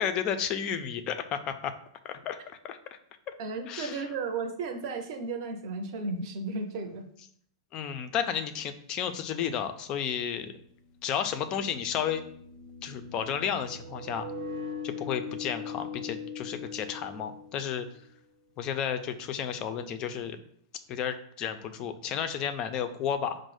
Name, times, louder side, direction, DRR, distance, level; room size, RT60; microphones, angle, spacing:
voice 1, 0.0-1.7 2.0-2.4 2.6-2.8 3.7-4.0 7.7-10.5 11.0-12.2 12.8-14.3 14.8-17.9 18.6-20.4 20.9-23.4, left 8 dB, 25° left, 8 dB, 0.3 m, -32 dB
voice 2, 3.4-7.1, right 3 dB, 40° right, 5 dB, 0.6 m, -34 dB
sound 1, 11.1-17.9, left 5 dB, 75° right, 0.8 m, -41 dB
5.2 x 2.0 x 4.7 m, 0.64 s
supercardioid pair, 160°, 3 cm